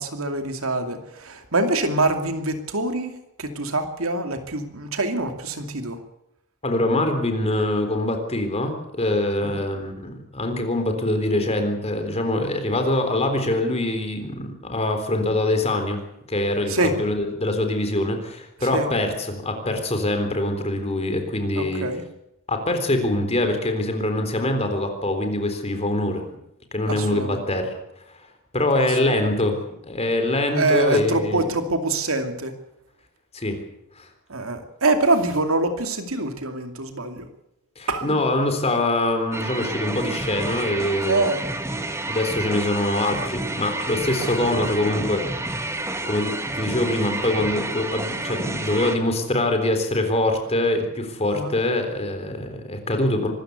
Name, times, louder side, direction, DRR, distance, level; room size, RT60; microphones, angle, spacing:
voice 1, 0.0-6.0 9.4-9.6 16.7-17.0 18.6-18.9 21.6-22.1 26.9-27.4 28.8-29.5 30.5-32.5 34.3-37.3 37.9-38.2 41.1-41.4 44.2-44.3 51.3-51.6, right 2 dB, 80° right, 7 dB, 2.5 m, -25 dB
voice 2, 6.6-16.0 16.3-21.9 22.5-26.3 26.7-27.8 28.5-29.6 29.9-31.4 33.3-33.6 34.0-34.1 37.8-41.3 42.1-45.5 46.0-53.3, left 1 dB, 30° left, 6 dB, 3.7 m, -24 dB
sound 1, 39.3-49.0, right 2 dB, 15° right, 1.9 m, -29 dB
24.5 x 14.0 x 8.2 m, 0.83 s
head